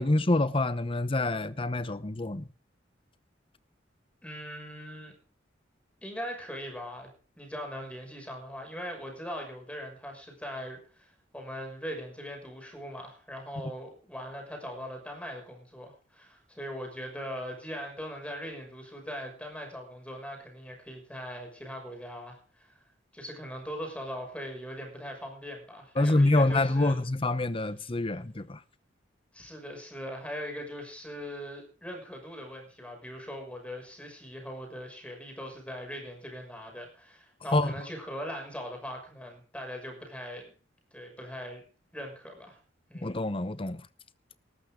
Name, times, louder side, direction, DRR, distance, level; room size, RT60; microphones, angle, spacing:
voice 1, 0.0-2.5 26.0-28.6 37.5-37.7 43.0-43.8, left 2 dB, 30° left, 0.8 m, -26 dB
voice 2, 4.2-5.1 6.0-7.1 7.4-22.7 23.1-27.0 29.3-40.5 40.9-41.6 41.9-42.6 42.9-43.2, equal, 5° left, 6.2 m, -40 dB
18.5 x 14.0 x 3.8 m
head